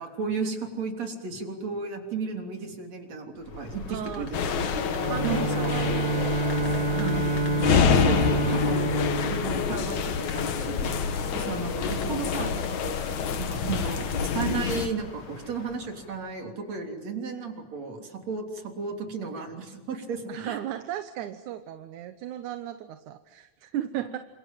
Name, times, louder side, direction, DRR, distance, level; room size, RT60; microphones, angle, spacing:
voice 1, 0.0-4.5 5.2-5.8 7.0-7.3 7.9-8.8 9.2-20.6 23.9-24.0, right 4 dB, 60° right, 3 dB, 4.5 m, -34 dB
sound 1, 3.4-16.4, left 4 dB, 50° left, 3.3 m, -43 dB
voice 2, 3.9-4.3 4.9-8.1 11.3-12.3 20.3-24.2, right 11 dB, 75° right, 9 dB, 2.4 m, -37 dB
sound 2, 4.3-14.9, left 7 dB, 70° left, 2.9 m, -27 dB
Bowed string instrument, 4.9-10.5, right 2 dB, 35° right, 1.8 m, -28 dB
28.5 x 27.0 x 7.7 m, 1.2 s
omnidirectional pair, 3.5 m